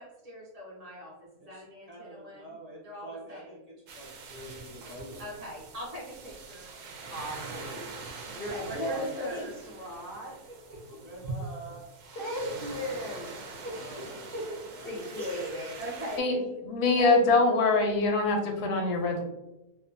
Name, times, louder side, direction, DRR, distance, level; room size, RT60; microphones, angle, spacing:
voice 1, 0.0-3.6 3.9-6.7 8.3-9.5 10.9-11.8 13.6-15.3 15.8-17.1, equal, 50° right, -5 dB, 0.4 m, -41 dB
sound 1, 3.9-16.2, right 4 dB, 70° right, 0.8 m, -43 dB
voice 2, 7.1-7.9 8.3-10.4 12.2-13.3 14.8-15.8, equal, 60° left, -3 dB, 0.6 m, -36 dB
voice 3, 16.6-19.2, left 3 dB, 90° left, 2 dB, 1.1 m, -24 dB
2.7 x 2.2 x 2.6 m, 0.94 s
omnidirectional pair, 1.6 m